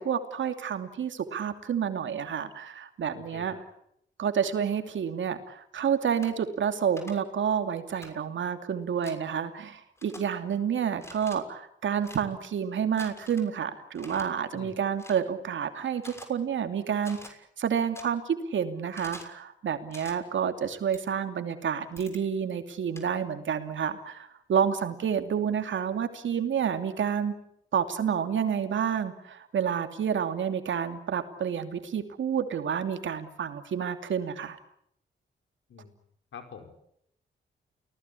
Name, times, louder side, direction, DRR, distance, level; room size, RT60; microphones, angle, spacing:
voice 1, 0.0-3.6 4.2-17.2 17.6-27.3 27.7-34.6, right 8 dB, 75° right, 8 dB, 2.8 m, -29 dB
voice 2, 3.1-3.6 14.5-14.8 35.7-35.9 36.3-36.7, left 6 dB, 80° left, 6 dB, 4.9 m, -45 dB
sound 1, 6.2-6.3 7.0-7.1 8.0-8.1 9.0-9.2 10.0-10.2 11.0-11.4 12.0-12.2 13.0-13.5 14.0-14.2 15.0-15.2 16.0-16.3 17.0-17.3 18.0-18.1 18.9-19.3 19.9-20.1 20.9-21.0 22.0-22.2 23.0-23.1, left 1 dB, 15° left, 6.5 m, -46 dB
29.5 x 19.0 x 8.5 m, 0.75 s
cardioid pair, 55°, 20 cm